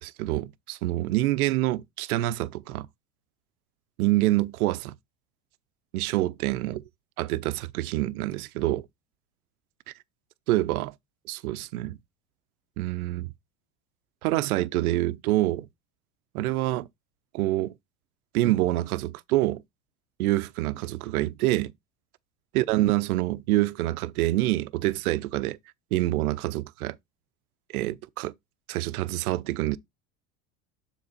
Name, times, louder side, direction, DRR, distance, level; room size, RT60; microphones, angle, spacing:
voice 1, 0.0-2.9 4.0-4.9 5.9-6.8 7.2-8.9 10.5-10.9 11.3-12.0 12.8-13.3 14.2-15.7 16.3-16.9 17.3-17.7 18.3-19.6 20.2-21.7 22.5-25.6 25.9-27.0 27.7-28.3 28.7-29.8, right 17 dB, 80° right, 0.6 m, -26 dB
7.3 x 3.9 x 4.0 m
hypercardioid pair, 90°, 43 cm